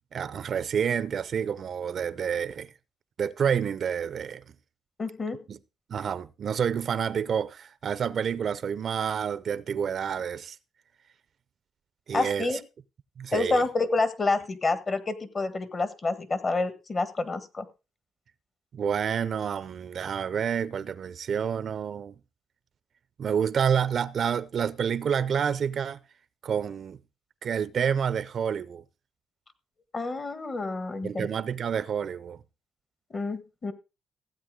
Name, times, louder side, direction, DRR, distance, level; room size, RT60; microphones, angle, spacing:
voice 1, 0.1-2.7 3.2-4.4 5.5-5.6 5.9-10.6 12.1-12.5 13.2-13.6 18.7-22.1 23.2-26.0 26.4-27.0 27.4-28.8 31.0-32.4, right 7 dB, 55° right, 0.5 m, -28 dB
voice 2, 5.0-5.4 12.1-12.6 13.3-17.6 29.9-31.3 33.1-33.7, left 3 dB, 35° left, 1.5 m, -28 dB
15.5 x 8.5 x 3.7 m
cardioid pair, 90°, 0 cm